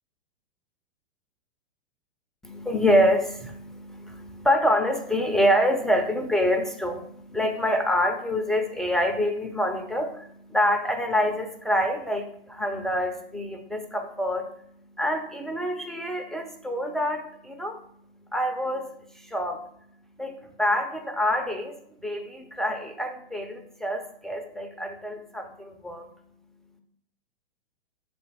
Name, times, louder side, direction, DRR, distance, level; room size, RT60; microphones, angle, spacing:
voice 1, 2.4-14.5 14.9-17.8 18.3-18.9 19.1-19.6 20.2-20.3 20.6-26.1, equal, ahead, 3 dB, 0.6 m, -26 dB
6.7 x 4.3 x 6.2 m, 0.67 s
figure-of-eight pair, 105°, 30 cm